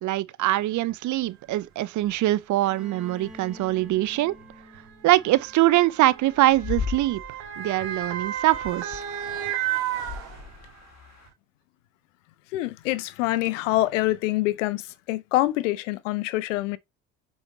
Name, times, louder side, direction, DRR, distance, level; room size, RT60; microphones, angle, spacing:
voice 1, 0.0-4.4 5.0-7.2 7.6-9.0, right 16 dB, 50° right, 0.8 m, -23 dB
Motor vehicle (road) / Siren, 0.9-1.0 2.0-2.2 3.2-10.8 11.3-11.4, right 11 dB, 70° right, 2.1 m, -34 dB
Bowed string instrument, 2.6-6.5, left 1 dB, ahead, 4.4 m, -49 dB
sound 1, 5.5-7.5 8.3-11.3, left 6 dB, 45° left, 1.9 m, -37 dB
voice 2, 12.5-16.8, left 17 dB, 75° left, 0.8 m, -25 dB
8.0 x 5.1 x 4.0 m
hypercardioid pair, 65°, 38 cm